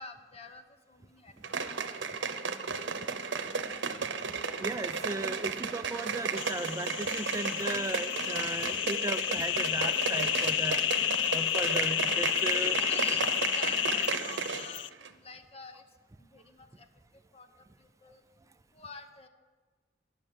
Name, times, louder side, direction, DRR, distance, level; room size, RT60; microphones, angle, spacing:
voice 1, 0.0-1.6 1.9-2.0 2.6-3.0 3.3-4.1 12.5-13.3 13.6-15.8 16.2-16.9 17.1-17.5 17.8-18.2 18.7-19.3, left 3 dB, 35° left, 7 dB, 0.9 m, -49 dB
sound 1, 1.4-14.7 15.0-15.1, right 5 dB, 85° right, 0.8 m, -34 dB
voice 2, 4.6-10.8 11.3-12.8, right 2 dB, 15° right, 12 dB, 0.4 m, -36 dB
sound 2, 6.4-14.9, left 12 dB, 80° left, 0.3 m, -31 dB
9.7 x 6.4 x 8.7 m, 1.4 s
head